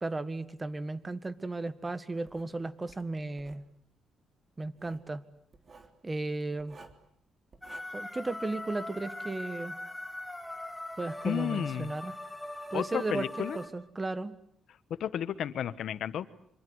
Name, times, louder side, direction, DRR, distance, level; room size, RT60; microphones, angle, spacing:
voice 1, 0.0-3.6 4.6-5.2 6.0-6.8 7.9-9.8 11.0-12.2 12.7-14.3, right 2 dB, 20° right, 13 dB, 1.8 m, -35 dB
Writing, 2.3-2.5 2.9-3.7 4.6-5.1 5.5-5.9 6.6-7.1 7.5-7.8, right 4 dB, 40° right, 3.4 m, -54 dB
sound 1, 7.6-13.7, left 1 dB, 5° left, 3.2 m, -41 dB
voice 2, 11.2-11.9 12.7-13.6 15.0-16.3, left 10 dB, 70° left, 14 dB, 1.3 m, -32 dB
26.5 x 25.0 x 8.1 m, 0.70 s
cardioid pair, 90°, 0 cm